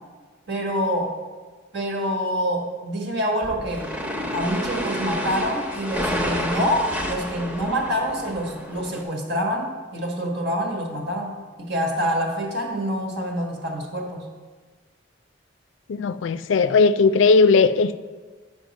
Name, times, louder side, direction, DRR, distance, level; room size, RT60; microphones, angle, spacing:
voice 1, 0.5-1.1 1.7-3.9 4.3-11.3 11.6-14.2, equal, 65° right, 1.4 m, -26 dB
sound 1, 3.4-9.0, equal, 5° right, 0.8 m, -29 dB
voice 2, 16.0-18.0, left 4 dB, 80° left, 0.4 m, -17 dB
9.0 x 5.3 x 5.3 m
head